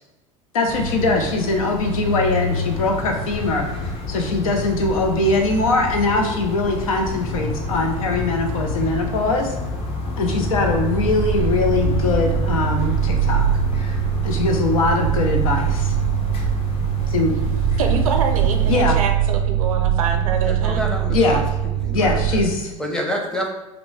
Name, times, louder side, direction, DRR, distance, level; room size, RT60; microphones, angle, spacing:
voice 1, 0.5-3.7 4.1-9.5 10.2-13.5 14.2-15.9 17.1-17.4 18.7-19.0 21.1-21.4 21.9-22.7, left 2 dB, 85° left, 3 dB, 0.7 m, -21 dB
sound 1, 0.7-18.9, left 3 dB, 35° left, 0.7 m, -28 dB
sound 2, 7.1-8.4 8.6-22.5, right 11 dB, 25° right, 0.3 m, -23 dB
voice 2, 17.8-20.9, right 5 dB, 85° right, 5 dB, 0.5 m, -26 dB
voice 3, 20.4-21.4 21.8-22.4 22.8-23.5, equal, 5° left, 1 dB, 0.7 m, -27 dB
2.9 x 2.2 x 4.0 m, 1.1 s
hypercardioid pair, 90°, 17 cm